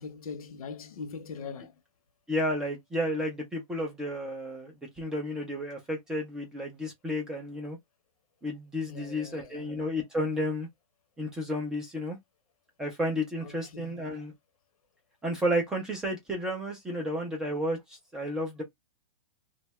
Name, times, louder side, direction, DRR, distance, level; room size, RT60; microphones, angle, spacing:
voice 1, 0.0-1.8 8.9-9.9 13.4-14.1, left 5 dB, 75° left, 0.8 m, -42 dB
voice 2, 2.3-7.8 8.4-10.7 11.2-12.2 12.8-14.3 15.2-17.8 18.1-18.6, equal, 5° right, 0.3 m, -32 dB
2.6 x 2.2 x 2.9 m
hypercardioid pair, 170°, 18 cm